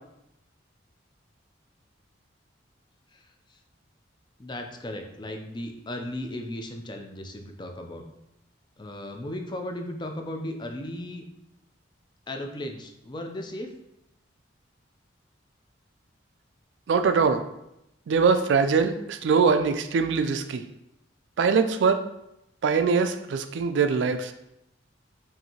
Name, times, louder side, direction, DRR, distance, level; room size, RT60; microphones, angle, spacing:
voice 1, 4.4-8.1 8.8-11.2 12.3-13.7, left 1 dB, 25° left, 4 dB, 0.4 m, -36 dB
voice 2, 16.9-17.4 18.1-20.6 21.4-22.0 22.6-24.3, right 5 dB, 65° right, 9 dB, 0.3 m, -22 dB
5.5 x 2.6 x 2.8 m, 0.83 s
head